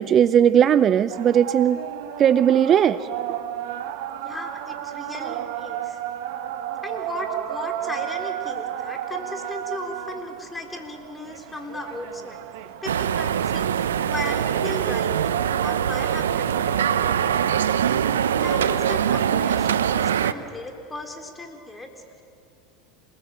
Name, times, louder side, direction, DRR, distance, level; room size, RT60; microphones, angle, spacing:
voice 1, 0.0-1.8 2.2-3.0, right 9 dB, 35° right, 16 dB, 0.6 m, -17 dB
sound 1, 1.1-20.2, right 11 dB, 65° right, 1.5 m, -33 dB
voice 2, 4.2-6.0 6.8-12.4 12.8-17.1 18.4-22.2, left 2 dB, 15° left, 4 dB, 4.0 m, -36 dB
sound 2, 12.9-20.3, right 9 dB, 80° right, 0.8 m, -23 dB
27.5 x 20.0 x 8.9 m, 2.4 s
hypercardioid pair, 85°, 0 cm